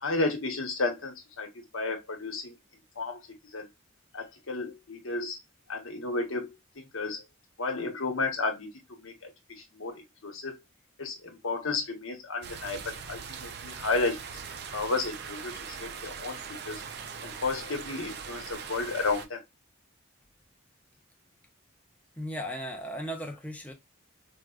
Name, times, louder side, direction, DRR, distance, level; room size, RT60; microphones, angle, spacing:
voice 1, 0.0-1.5 1.7-2.5 3.0-3.2 3.5-3.7 4.1-5.4 5.7-7.2 7.6-8.7 9.0-9.1 9.7-10.5 11.0-14.2 14.7-16.4 16.7-16.8 17.2-19.4, left 3 dB, 85° left, 1.1 m, -32 dB
sound 1, 12.4-19.3, right 6 dB, 55° right, 0.4 m, -41 dB
voice 2, 22.2-23.7, equal, 5° left, 0.5 m, -36 dB
4.7 x 2.1 x 2.3 m
head